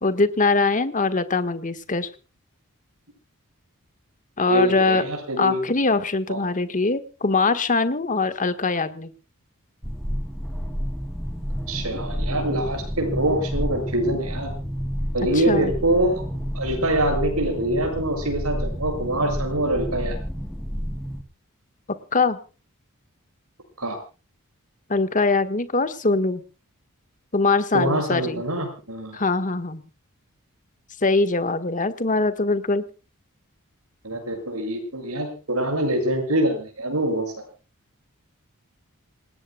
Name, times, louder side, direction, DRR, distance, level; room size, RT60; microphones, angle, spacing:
voice 1, 0.0-2.1 4.4-5.0 5.4-9.1 15.3-15.7 22.1-22.4 24.9-26.4 27.3-28.4 29.1-29.8 31.0-32.8, left 3 dB, 35° left, 11 dB, 1.5 m, -22 dB
voice 2, 4.5-5.6 6.3-6.4 11.7-14.5 15.1-16.2 16.5-20.2 23.8-24.0 27.7-29.2 34.0-37.3, right 1 dB, 80° right, 4 dB, 7.5 m, -24 dB
sound 1, 9.8-21.2, equal, ahead, 2.6 m, -30 dB
27.5 x 18.5 x 2.3 m, 0.35 s
head